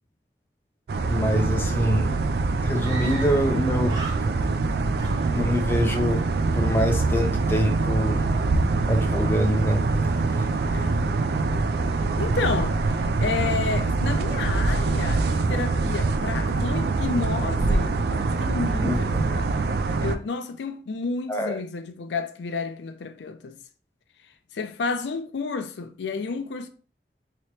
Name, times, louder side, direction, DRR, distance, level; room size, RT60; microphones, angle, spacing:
sound 1, 0.9-20.2, right 3 dB, 65° right, 0.3 m, -24 dB
voice 1, 1.1-2.1 2.6-4.5 4.8-4.9 5.3-6.2 6.5-8.2 8.9-9.8 10.3-10.5 18.8-19.0 21.3-21.6, equal, 15° left, 0.4 m, -25 dB
Screaming, 2.8-3.6 3.8-4.6 5.0-5.9, right 3 dB, 25° right, 0.8 m, -39 dB
voice 2, 10.7-11.2 12.2-18.0 18.4-19.7 20.0-23.6 24.5-26.7, left 4 dB, 85° left, 0.4 m, -31 dB
2.9 x 2.9 x 3.1 m
head